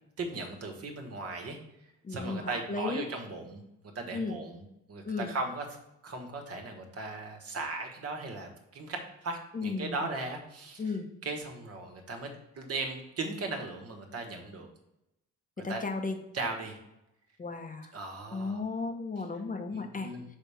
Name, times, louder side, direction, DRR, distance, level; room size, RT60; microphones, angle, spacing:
voice 1, 0.2-1.6 2.1-3.6 3.9-4.6 4.9-5.6 6.0-10.8 11.2-12.3 12.5-14.7 15.7-15.8 16.3-16.8 17.9-18.6 19.7-20.2, right 3 dB, 50° right, 3 dB, 1.5 m, -37 dB
voice 2, 2.0-3.1 4.1-4.4 5.0-5.3 9.5-10.1 10.8-11.1 15.6-16.2 17.4-17.9 18.3-20.1, left 3 dB, 25° left, 4 dB, 0.9 m, -34 dB
5.6 x 3.5 x 5.7 m, 0.87 s
cardioid pair, 90°, 30 cm